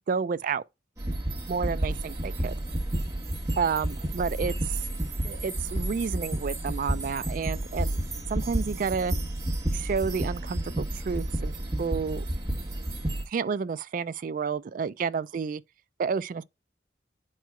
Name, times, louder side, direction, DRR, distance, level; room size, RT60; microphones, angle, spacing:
voice 1, 0.1-0.6 1.5-2.6 3.6-4.8 5.2-8.0 8.3-9.1 9.7-11.5 11.8-12.2 13.3-15.6 16.0-16.4, right 5 dB, 50° right, 0.3 m, -30 dB
sound 1, 1.0-13.2, right 1 dB, 20° right, 1.3 m, -31 dB
10.0 x 4.3 x 2.3 m
head